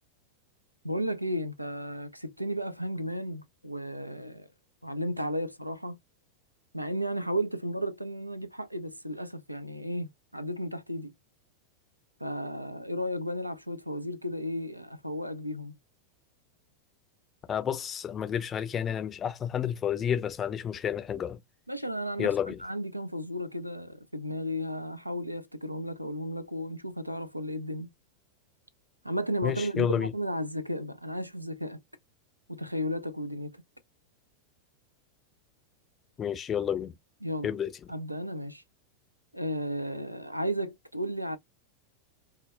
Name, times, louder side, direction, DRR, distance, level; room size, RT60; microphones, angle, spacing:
voice 1, 0.8-4.5 4.8-6.0 6.7-11.1 12.2-15.8 21.7-27.9 29.0-31.8 32.5-33.6 37.2-37.5 37.9-38.6 39.3-41.4, equal, 90° right, 0.3 m, -34 dB
voice 2, 17.5-21.4 22.2-22.6 29.4-30.1 36.2-36.9 37.4-37.7, left 8 dB, 25° left, 0.5 m, -30 dB
2.1 x 2.1 x 3.1 m
figure-of-eight pair, 90°, 0 cm